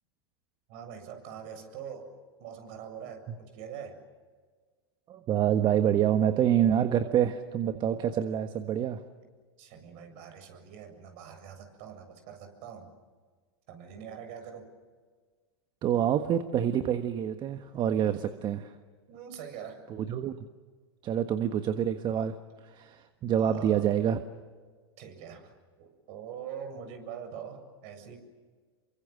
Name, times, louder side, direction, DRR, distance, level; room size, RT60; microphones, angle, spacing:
voice 1, 0.7-2.1 2.4-4.0 9.6-12.9 13.7-14.7 19.1-20.0 23.3-23.9 25.0-25.5 25.8-28.2, right 8 dB, 50° right, 7 dB, 7.5 m, -43 dB
voice 2, 5.1-9.0 15.8-18.7 19.9-20.3 21.0-22.3 22.6-24.2, right 9 dB, 35° right, 9 dB, 1.4 m, -27 dB
29.0 x 24.0 x 7.8 m, 1.5 s
hypercardioid pair, 115°, 14 cm